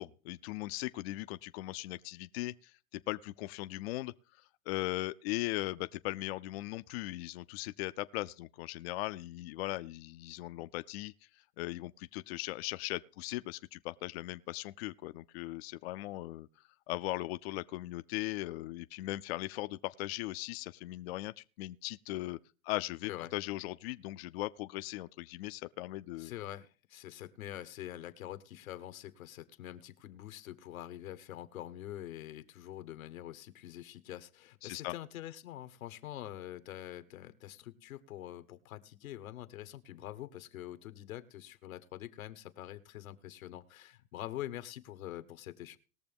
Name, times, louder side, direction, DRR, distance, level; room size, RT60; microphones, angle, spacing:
voice 1, 0.0-4.1 4.7-11.1 11.6-16.5 16.9-22.4 22.6-26.3 34.6-34.9, left 18 dB, 50° left, 0.4 m, -39 dB
voice 2, 26.2-45.8, left 13 dB, 90° left, 1.2 m, -45 dB
20.0 x 6.9 x 3.5 m
supercardioid pair, 150°, 40 cm